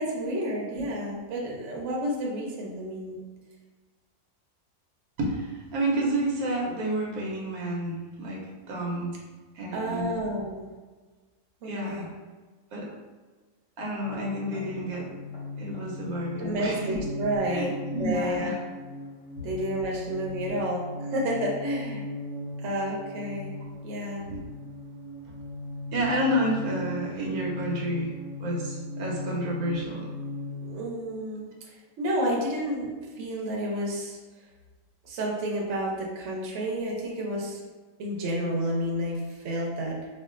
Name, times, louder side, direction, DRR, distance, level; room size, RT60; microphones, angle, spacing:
voice 1, 0.0-3.2 9.7-10.6 11.6-12.1 16.4-17.7 18.0-18.5 19.4-22.0 22.6-23.5 23.8-24.2 30.6-31.5 32.0-32.9 33.2-34.2 35.0-37.6 38.0-40.1, equal, 60° right, -2 dB, 1.0 m, -30 dB
voice 2, 5.2-9.2 9.5-10.2 11.6-12.1 12.7-12.9 13.8-15.1 15.6-17.0 17.5-18.6 19.4-19.5 19.8-20.0 20.4-20.5 24.3-24.4 25.9-28.1 28.4-30.1, right 1 dB, 85° right, -3 dB, 1.2 m, -30 dB
sound 1, 14.0-30.7, left 1 dB, 55° left, 1.7 m, -37 dB
4.5 x 2.4 x 2.4 m, 1.3 s
omnidirectional pair, 1.5 m